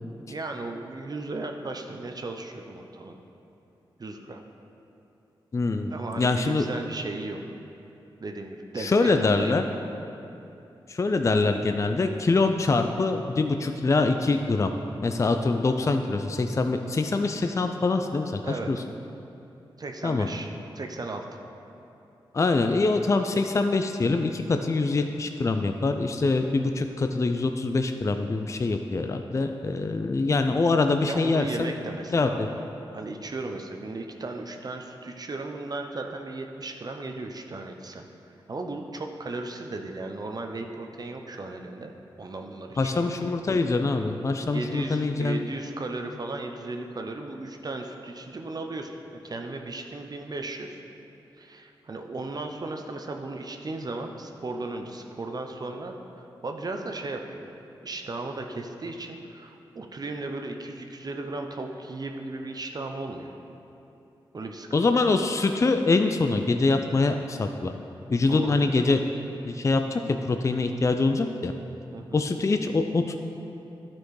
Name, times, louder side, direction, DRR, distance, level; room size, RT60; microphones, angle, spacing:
voice 1, 0.3-3.2 4.0-4.4 5.9-7.4 8.2-9.6 18.4-18.7 19.8-20.5 20.8-21.2 31.0-32.6 32.9-38.1 38.5-41.9 42.2-43.1 44.5-49.0 49.2-50.8 51.4-57.5 57.8-63.3 64.3-65.0 68.3-68.8 71.9-72.2, right 2 dB, 45° right, 4 dB, 0.6 m, -36 dB
voice 2, 5.5-6.6 8.8-9.6 10.9-14.7 15.0-18.8 20.0-20.3 22.3-31.7 32.1-32.5 42.8-45.4 64.7-67.7 68.1-69.0 69.4-71.5 72.1-73.1, left 3 dB, 35° left, 6 dB, 0.4 m, -24 dB
11.0 x 4.4 x 4.8 m, 2.8 s
cardioid pair, 60°, 9 cm